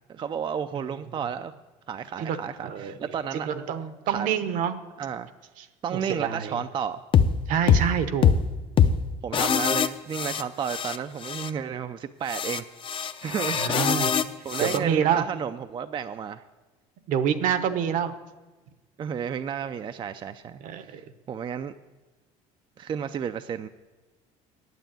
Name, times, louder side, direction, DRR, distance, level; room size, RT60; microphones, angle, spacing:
voice 1, 0.1-1.5 1.9-3.5 4.1-4.3 5.0-5.3 5.8-7.0 9.2-13.6 14.4-16.4 19.0-20.6 21.0-21.7 22.8-23.7, right 7 dB, 35° right, 9 dB, 0.4 m, -32 dB
voice 2, 2.6-2.9 3.3-4.8 5.6-5.7 5.9-6.6 7.5-8.4 13.3-14.1 14.7-15.3 17.1-18.1 20.6-21.0, right 8 dB, 65° right, 11 dB, 1.0 m, -27 dB
sound 1, 7.1-7.3 7.7-7.9 8.2-8.4 8.8-9.0 9.3-11.0 11.2-11.5 12.3-14.8, left 7 dB, 35° left, 0.6 m, -23 dB
9.4 x 7.9 x 9.0 m, 1.2 s
cardioid pair, 115°, 15 cm